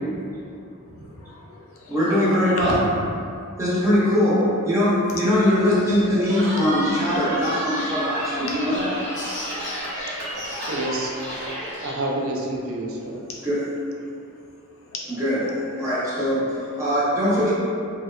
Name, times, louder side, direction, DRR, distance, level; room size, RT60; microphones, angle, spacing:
voice 1, 0.8-2.8 8.9-9.1 9.8-10.3 10.5-10.8 11.7-11.8 13.2-13.4 14.0-14.1 14.7-16.1, left 2 dB, 65° left, -3 dB, 0.4 m, -39 dB
voice 2, 1.9-2.8 3.6-8.9 13.4-13.6 15.2-15.4 15.8-17.5, left 1 dB, 15° right, -10 dB, 0.6 m, -21 dB
Cheering, 6.3-11.8, right 1 dB, 45° right, 0.8 m, -32 dB
sound 1, 6.7-12.0, left 1 dB, 35° left, 0.7 m, -39 dB
voice 3, 10.4-11.1 11.8-13.2, right 1 dB, 70° right, -2 dB, 0.4 m, -28 dB
2.7 x 2.1 x 2.3 m, 2.4 s
head